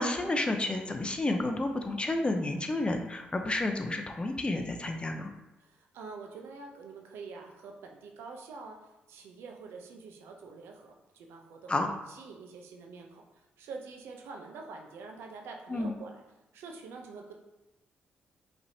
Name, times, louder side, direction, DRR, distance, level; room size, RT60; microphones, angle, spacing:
voice 1, 0.0-5.3 11.7-11.9 15.7-15.9, left 2 dB, 25° left, 5 dB, 0.6 m, -30 dB
voice 2, 5.6-11.7 12.1-16.2 16.5-17.3, right 4 dB, 85° right, 2 dB, 0.6 m, -46 dB
5.0 x 3.3 x 2.8 m, 0.98 s
supercardioid pair, 60°, 4 cm